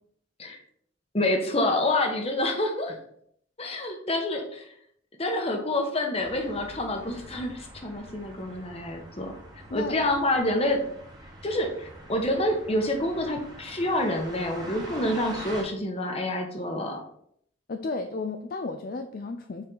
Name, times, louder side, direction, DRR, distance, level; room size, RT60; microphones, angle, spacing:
voice 1, 1.1-3.0 3.6-4.7 5.2-9.3 9.7-10.8 11.4-17.0, left 1 dB, 30° left, 3 dB, 1.0 m, -27 dB
sound 1, 6.2-15.6, right 1 dB, 20° right, 1.4 m, -44 dB
voice 2, 9.7-10.0 17.7-19.6, left 3 dB, 45° left, 7 dB, 0.4 m, -33 dB
6.9 x 4.7 x 3.9 m, 0.68 s
head